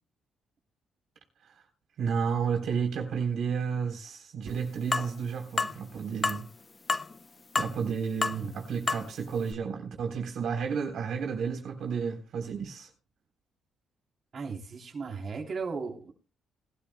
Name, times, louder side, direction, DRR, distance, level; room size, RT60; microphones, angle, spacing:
voice 1, 2.0-6.5 7.6-12.9, right 6 dB, 70° right, 3.5 m, -32 dB
sound 1, 4.9-5.1 5.6-5.8 6.2-6.4 6.9-7.1 7.6-7.9 8.2-8.4 8.9-9.1 9.5-9.6, left 4 dB, 30° left, 0.6 m, -28 dB
voice 2, 14.3-16.1, right 5 dB, 45° right, 3.2 m, -36 dB
20.5 x 12.5 x 2.2 m
cardioid pair, 90°, 0 cm